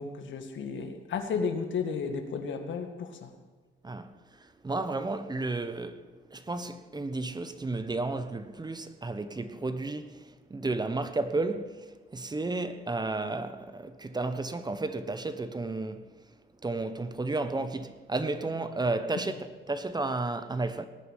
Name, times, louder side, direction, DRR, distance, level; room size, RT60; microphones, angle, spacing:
voice 1, 0.0-3.3 19.1-19.3, left 5 dB, 70° left, 2.0 m, -33 dB
voice 2, 4.6-6.0 6.3-10.2 10.5-11.9 12.1-16.0 16.6-19.4 19.7-20.9, right 2 dB, 20° right, 1.1 m, -32 dB
19.0 x 9.3 x 7.5 m
cardioid pair, 90°, 20 cm